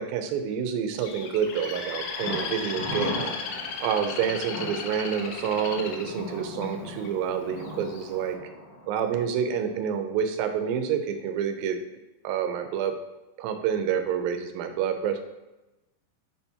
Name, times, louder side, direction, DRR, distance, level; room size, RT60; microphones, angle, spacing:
voice 1, 0.0-8.4 8.9-11.8 12.2-13.0 13.4-15.2, right 8 dB, 85° right, 6 dB, 2.4 m, -28 dB
Bird, 1.0-7.1 7.6-8.0, left 5 dB, 80° left, 1.7 m, -35 dB
Thunder, 2.2-9.9 10.2-10.3 10.7-10.8, left 2 dB, 60° left, 3.1 m, -38 dB
7.2 x 5.8 x 2.8 m, 1.0 s
omnidirectional pair, 4.1 m